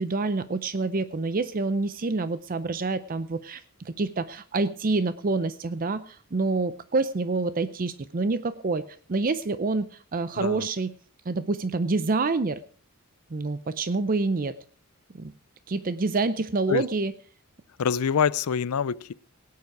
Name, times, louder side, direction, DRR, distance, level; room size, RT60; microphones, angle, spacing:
voice 1, 0.0-10.9 11.3-12.6 13.3-14.6 15.1-15.3 15.7-17.1, right 3 dB, 40° right, 0.5 m, -27 dB
voice 2, 10.4-10.7 16.7-16.8 17.8-19.1, left 7 dB, 75° left, 0.5 m, -25 dB
17.5 x 9.5 x 4.7 m
head